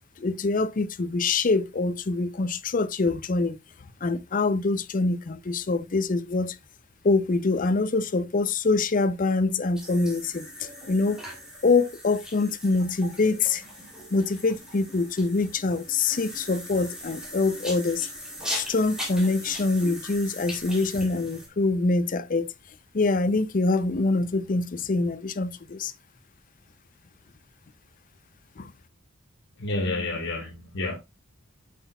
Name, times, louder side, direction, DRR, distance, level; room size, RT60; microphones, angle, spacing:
voice 1, 0.2-3.6 4.0-6.6 7.0-11.2 11.6-13.6 14.1-18.1 18.5-22.5 22.9-25.9 28.6-28.7, left 3 dB, 40° left, 0.5 m, -25 dB
sound 1, 9.7-21.5, equal, 5° right, 2.8 m, -39 dB
voice 2, 29.6-30.9, left 2 dB, 60° left, 1.2 m, -29 dB
8.2 x 6.0 x 2.3 m
head